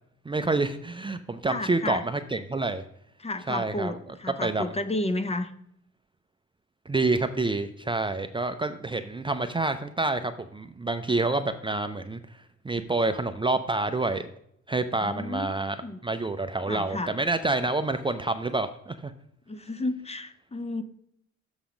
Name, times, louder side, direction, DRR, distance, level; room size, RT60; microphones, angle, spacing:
voice 1, 0.3-2.8 3.5-4.0 4.2-4.7 6.9-12.2 12.6-14.3 14.7-15.8 16.0-19.1, right 2 dB, 15° right, 8 dB, 0.5 m, -28 dB
voice 2, 1.5-2.0 3.2-5.5 15.0-15.6 15.8-16.0 16.7-17.1 19.5-20.8, left 2 dB, 20° left, 11 dB, 0.7 m, -32 dB
7.0 x 5.6 x 5.1 m, 0.72 s
cardioid pair, 90°, 30 cm